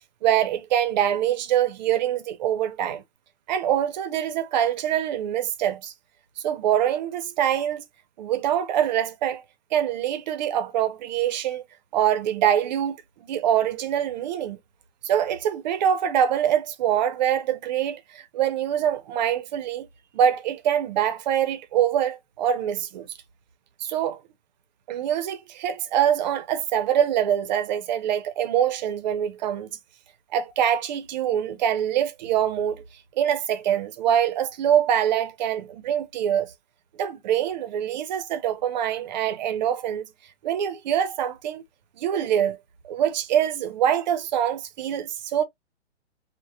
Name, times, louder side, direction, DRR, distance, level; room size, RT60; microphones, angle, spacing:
voice 1, 0.2-3.0 3.5-5.9 6.4-7.8 8.2-9.4 9.7-11.6 11.9-13.0 13.3-14.6 15.0-19.9 20.1-23.1 23.8-24.2 24.9-29.7 30.3-32.8 33.2-36.5 37.0-40.1 40.4-41.6 42.0-42.6 42.8-45.4, right 10 dB, 40° right, 0.5 m, -24 dB
3.3 x 2.0 x 2.2 m
hypercardioid pair, 140°, 35 cm